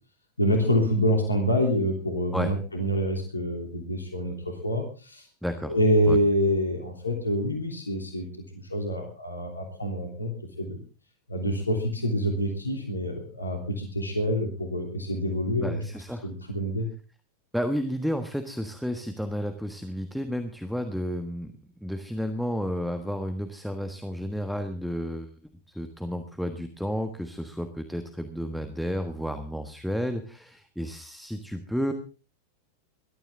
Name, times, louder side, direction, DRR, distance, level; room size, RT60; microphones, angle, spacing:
voice 1, 0.4-5.3 5.6-8.3 8.7-10.8 11.3-15.8 16.2-16.9, equal, 80° left, 2 dB, 3.1 m, -26 dB
voice 2, 5.4-5.7 6.1-6.2 15.6-16.3 17.5-21.5 21.8-25.3 25.7-31.9, equal, ahead, 8 dB, 1.4 m, -31 dB
21.0 x 13.0 x 3.7 m, 0.35 s
figure-of-eight pair, 90°, 0 cm